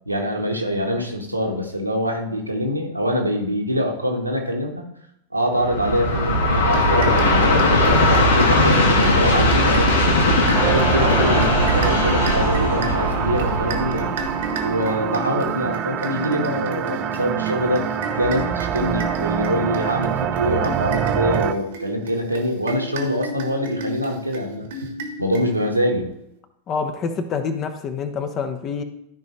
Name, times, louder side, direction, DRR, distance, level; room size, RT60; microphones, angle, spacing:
voice 1, 0.0-4.8 5.3-9.9 10.5-14.1 14.6-24.9 25.2-26.0, equal, 85° right, 1 dB, 1.4 m, -24 dB
Train, 5.6-14.8, left 1 dB, 65° left, 1.5 m, -19 dB
sound 1, 6.7-25.9, right 1 dB, 55° right, 1.2 m, -33 dB
sound 2, 10.5-21.5, right 10 dB, 35° right, 0.5 m, -25 dB
voice 2, 26.7-28.8, left 5 dB, 30° left, 7 dB, 1.0 m, -26 dB
13.0 x 5.3 x 3.2 m, 0.78 s
figure-of-eight pair, 90°, 0 cm